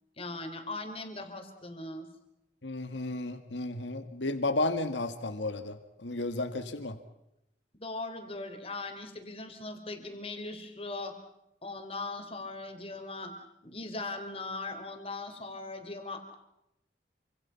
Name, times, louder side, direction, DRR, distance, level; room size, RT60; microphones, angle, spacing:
voice 1, 0.2-2.1 7.8-11.1 11.6-13.3 13.6-16.3, left 2 dB, 30° left, 6 dB, 3.6 m, -39 dB
voice 2, 2.6-7.0, left 2 dB, 90° left, 9 dB, 1.7 m, -33 dB
27.5 x 26.0 x 5.8 m, 0.85 s
head